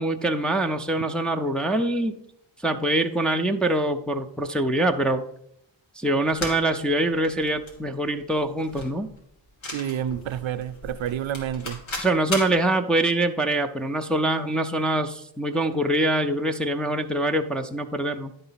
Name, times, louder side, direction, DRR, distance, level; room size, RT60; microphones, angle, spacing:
voice 1, 0.0-2.2 2.6-5.2 6.0-9.1 12.0-18.3, right 1 dB, ahead, 2 dB, 0.4 m, -24 dB
sound 1, 6.3-12.6, left 1 dB, 80° left, 2.3 m, -37 dB
voice 2, 9.7-11.8, right 10 dB, 80° right, 12 dB, 0.6 m, -29 dB
10.5 x 4.0 x 5.6 m, 0.74 s
wide cardioid pair, 105°, 46 cm